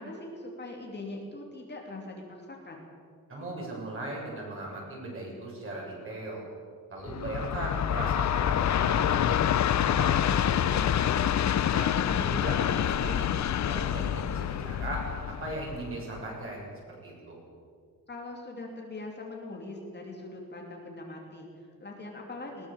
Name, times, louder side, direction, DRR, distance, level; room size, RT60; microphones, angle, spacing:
voice 1, 0.0-2.9 11.9-12.4 18.1-22.7, left 2 dB, 30° left, 0 dB, 2.9 m, -41 dB
voice 2, 3.3-6.4 6.9-11.2 11.7-13.3 13.6-16.6 17.0-17.4, right 1 dB, 35° right, -3 dB, 7.5 m, -38 dB
Train, 7.1-16.3, left 10 dB, 50° left, 0.6 m, -27 dB
20.5 x 20.0 x 7.1 m, 2.1 s
wide cardioid pair, 175°, 35 cm